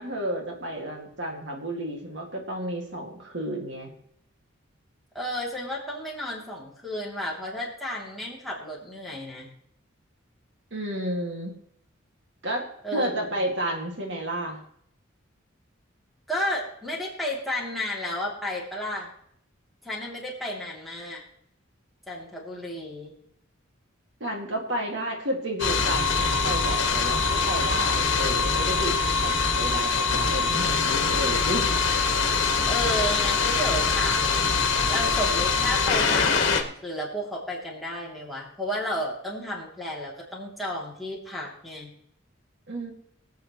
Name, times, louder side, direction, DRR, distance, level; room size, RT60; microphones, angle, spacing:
voice 1, 0.0-3.9 10.7-11.6 12.4-14.6 24.2-29.0 29.2-31.7 42.7-42.9, right 1 dB, 60° right, 1 dB, 2.1 m, -31 dB
voice 2, 5.1-9.5 12.8-13.1 16.3-19.1 19.8-21.2 22.1-23.1 32.7-41.9, equal, ahead, -5 dB, 2.8 m, -32 dB
sound 1, 25.6-36.6, left 4 dB, 60° left, 1.6 m, -23 dB
24.0 x 8.4 x 3.1 m, 0.70 s
head